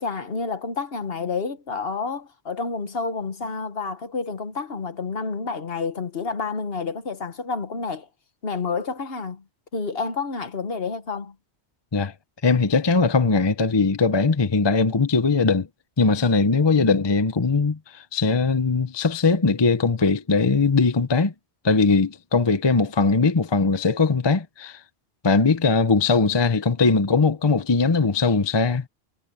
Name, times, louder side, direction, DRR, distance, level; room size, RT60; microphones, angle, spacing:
voice 1, 0.0-8.1 8.4-9.4 9.7-11.3 16.5-16.9, left 4 dB, 50° left, 1.4 m, -29 dB
voice 2, 12.4-15.7 16.0-21.3 21.6-24.8 25.2-28.8, left 4 dB, 25° left, 0.7 m, -20 dB
omnidirectional pair, 1.3 m